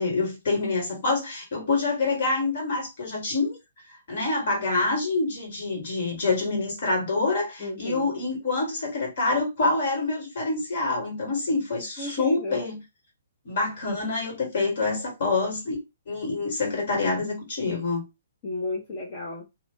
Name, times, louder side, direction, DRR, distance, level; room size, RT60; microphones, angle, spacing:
voice 1, 0.0-3.6 4.1-12.8 13.4-15.8 16.1-18.0, left 3 dB, 50° left, 1.5 m, -26 dB
voice 2, 7.6-8.1 12.0-12.6 18.4-19.4, left 2 dB, 30° left, 0.8 m, -33 dB
2.4 x 2.2 x 3.6 m
figure-of-eight pair, 125°, 0 cm